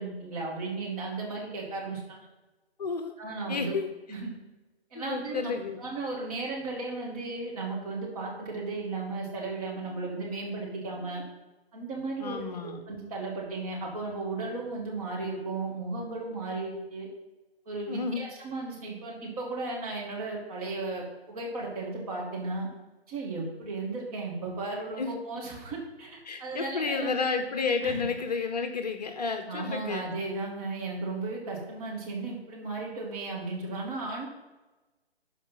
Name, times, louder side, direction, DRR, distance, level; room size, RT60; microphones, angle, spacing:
voice 1, 0.0-2.2 3.2-3.7 4.1-4.3 4.9-11.2 11.7-17.1 17.7-22.7 23.1-27.1 27.8-28.1 29.5-34.3, right 3 dB, 35° right, -2 dB, 2.8 m, -35 dB
voice 2, 2.8-3.1 3.5-3.9 4.9-5.8 12.2-12.8 17.9-18.2 25.0-25.1 26.2-30.1, left 5 dB, 40° left, 6 dB, 0.8 m, -31 dB
12.5 x 4.8 x 5.6 m, 1.1 s
figure-of-eight pair, 150°, 32 cm